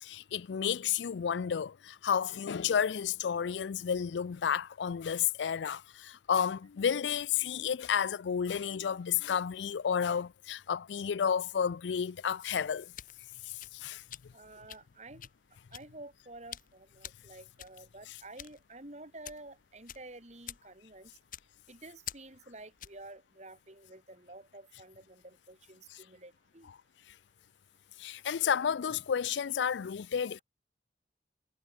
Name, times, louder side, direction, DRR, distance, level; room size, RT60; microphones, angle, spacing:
voice 1, 0.0-12.9 13.5-14.0 28.0-30.4, left 7 dB, 85° left, 0.4 m, -31 dB
sound 1, 12.8-23.1, left 11 dB, 50° left, 1.6 m, -49 dB
voice 2, 14.3-15.3 15.7-21.1 21.7-26.7, right 2 dB, 40° right, 7.1 m, -50 dB
head